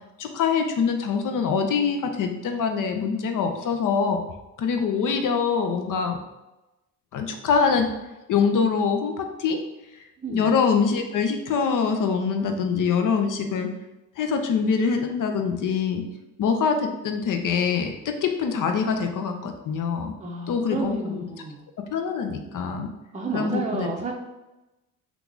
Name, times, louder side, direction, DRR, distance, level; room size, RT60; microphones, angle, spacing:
voice 1, 0.2-4.2 4.6-6.2 7.1-7.9 8.3-9.6 10.3-13.7 14.2-16.0 16.4-20.1 20.5-21.2 21.9-22.9 23.3-23.9, left 5 dB, 55° left, 5 dB, 0.6 m, -24 dB
voice 2, 20.2-21.6 23.1-24.1, right 3 dB, 20° right, -1 dB, 0.6 m, -31 dB
2.9 x 2.4 x 3.7 m, 1.0 s
supercardioid pair, 55°, 39 cm